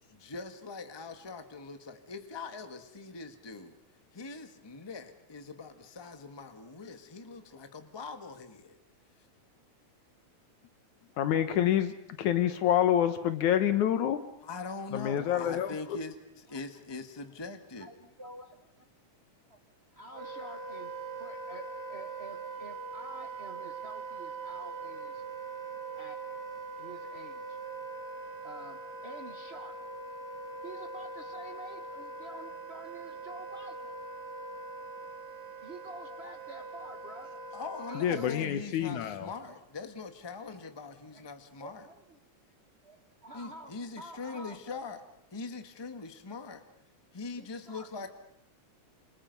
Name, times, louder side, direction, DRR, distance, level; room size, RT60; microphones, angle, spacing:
voice 1, 0.1-3.7 4.1-8.8 14.4-17.9 37.5-41.9 43.3-45.0 45.3-46.6 47.1-48.1, left 4 dB, 15° left, 7 dB, 0.9 m, -42 dB
voice 2, 11.2-14.2 14.9-16.0 37.9-39.3, left 10 dB, 75° left, 10 dB, 2.5 m, -27 dB
voice 3, 17.8-18.9 19.5-19.6 19.9-20.9 21.2-25.2 26.0-26.2 26.8-27.6 28.4-29.8 30.6-33.7 35.6-37.3 37.9-38.5 39.4-39.6 41.1-41.3 41.6-42.2 42.8-43.7 44.0-44.8 47.4-48.1, right 1 dB, 55° right, 5 dB, 0.7 m, -49 dB
Wind instrument woodwind instrument, 20.1-38.3, right 3 dB, 85° right, 5.3 m, -42 dB
29.0 x 27.0 x 5.4 m, 0.74 s
omnidirectional pair, 3.5 m